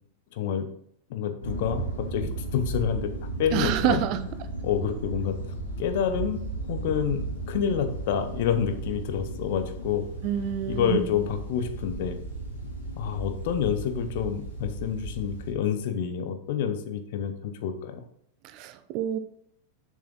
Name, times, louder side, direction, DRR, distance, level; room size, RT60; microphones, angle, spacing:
voice 1, 0.3-0.7 1.1-3.1 3.4-4.0 4.6-5.4 5.8-10.0 10.7-12.2 13.0-18.0, left 8 dB, 50° left, 8 dB, 0.9 m, -28 dB
sound 1, 1.4-15.5, right 2 dB, 75° left, 2.2 m, -35 dB
voice 2, 3.5-4.2 10.2-11.1 18.4-19.2, right 10 dB, 40° right, 11 dB, 0.7 m, -27 dB
6.7 x 6.5 x 3.9 m, 0.68 s
figure-of-eight pair, 90°, 0 cm